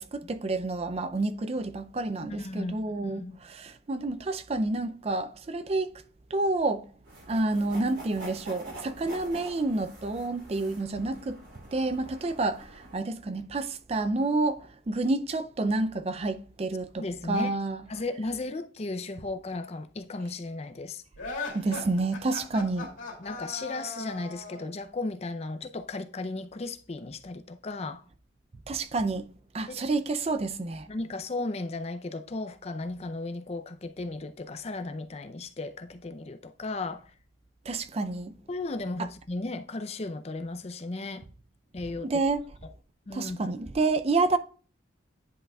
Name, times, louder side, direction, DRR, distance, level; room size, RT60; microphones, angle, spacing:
voice 1, 0.0-3.2 3.6-5.9 6.3-6.9 7.3-11.4 11.7-12.7 12.9-17.8 21.5-22.9 28.7-29.3 29.5-30.9 37.7-38.3 42.0-42.4 43.1-44.4, right 2 dB, 30° right, 0.4 m, -29 dB
voice 2, 2.2-2.8 3.0-3.4 17.0-17.5 17.9-21.0 21.6-21.7 23.2-28.0 29.7-29.8 30.9-37.1 38.5-41.2 41.7-42.2 43.1-43.6, left 2 dB, 35° left, 0.5 m, -35 dB
sound 1, 7.0-13.0, right 1 dB, 70° right, 3.4 m, -45 dB
sound 2, 21.2-24.7, left 3 dB, 85° left, 2.4 m, -38 dB
10.0 x 5.6 x 2.3 m
head